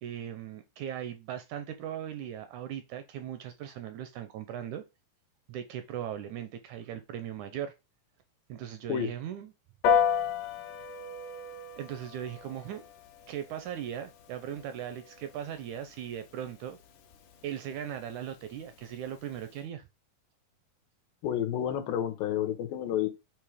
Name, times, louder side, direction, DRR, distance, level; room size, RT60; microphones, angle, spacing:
voice 1, 0.0-4.8 5.5-7.7 8.5-9.5 11.8-12.8 13.3-16.8 17.4-19.8, right 10 dB, 80° right, 1.7 m, -38 dB
Piano, 9.8-19.6, left 7 dB, 75° left, 2.3 m, -34 dB
voice 2, 21.2-23.1, left 10 dB, 90° left, 2.6 m, -30 dB
6.9 x 3.1 x 4.8 m
omnidirectional pair, 4.0 m